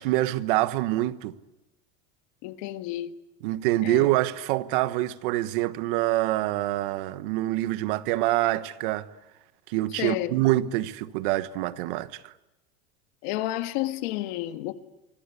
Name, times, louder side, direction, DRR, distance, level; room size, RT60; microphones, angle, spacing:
voice 1, 0.0-1.3 3.4-9.1 9.7-12.3, right 16 dB, 55° right, 1.2 m, -26 dB
voice 2, 2.4-3.1 3.8-4.1 10.0-10.3 13.2-14.7, left 15 dB, 50° left, 1.5 m, -31 dB
27.5 x 25.0 x 8.4 m
supercardioid pair, 175°, 30 cm